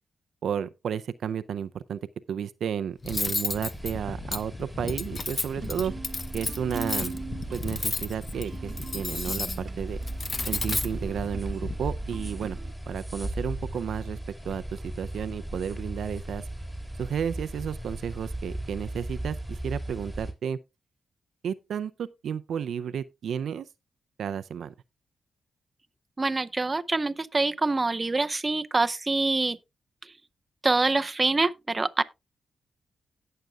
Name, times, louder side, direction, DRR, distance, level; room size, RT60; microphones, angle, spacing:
voice 1, 0.4-2.0 2.3-5.9 6.3-7.1 7.5-10.0 10.5-12.6 12.9-14.2 14.4-14.6 15.0-16.4 17.0-20.6 21.4-23.7 24.2-24.7, right 8 dB, 80° right, 0.5 m, -32 dB
Cutlery silverware, 3.0-11.7, left 3 dB, 35° left, 0.9 m, -33 dB
sound 1, 3.5-20.3, right 1 dB, 10° left, 3.3 m, -37 dB
sound 2, 5.5-12.7, right 4 dB, 45° right, 1.0 m, -42 dB
voice 2, 26.2-29.6 30.0-30.1 30.6-32.0, right 3 dB, 25° right, 0.6 m, -25 dB
17.0 x 6.6 x 2.4 m
cardioid pair, 80°, 0 cm